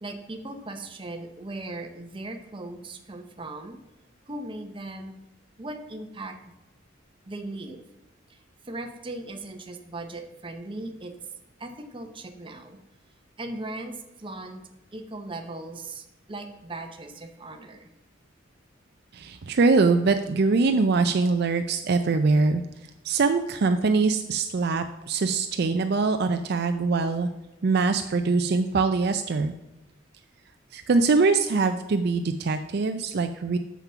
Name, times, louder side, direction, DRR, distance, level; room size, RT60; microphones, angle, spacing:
voice 1, 0.0-3.8 4.3-5.2 5.6-6.5 7.2-7.8 8.3-11.2 11.6-12.8 13.4-14.6 14.9-17.9, right 2 dB, 25° right, 5 dB, 0.9 m, -38 dB
voice 2, 19.1-22.6 23.0-27.3 27.6-29.5 30.7-33.6, right 4 dB, 55° right, 8 dB, 0.4 m, -23 dB
7.1 x 5.9 x 5.6 m, 1.0 s
head